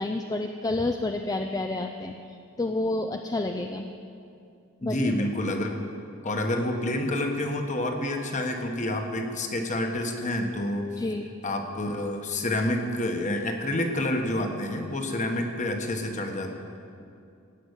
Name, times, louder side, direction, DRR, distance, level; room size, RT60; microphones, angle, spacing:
voice 1, 0.0-2.1 2.6-3.8 4.8-5.1 11.0-11.3, left 2 dB, 15° left, 5 dB, 0.4 m, -29 dB
voice 2, 4.8-5.8 6.2-10.9 11.4-16.5, left 1 dB, 35° left, 4 dB, 1.3 m, -28 dB
17.0 x 6.0 x 8.2 m, 2.5 s
head